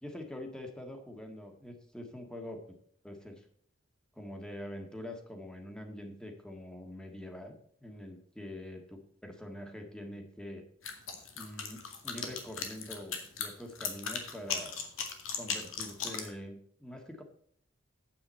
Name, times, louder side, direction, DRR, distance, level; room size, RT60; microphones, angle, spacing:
voice 1, 0.0-2.8 3.0-3.4 4.1-10.6 11.3-14.8 15.4-17.2, left 1 dB, 5° left, 3 dB, 1.7 m, -45 dB
sound 1, 10.8-16.3, left 6 dB, 75° left, 2.1 m, -37 dB
9.0 x 8.7 x 4.3 m, 0.64 s
head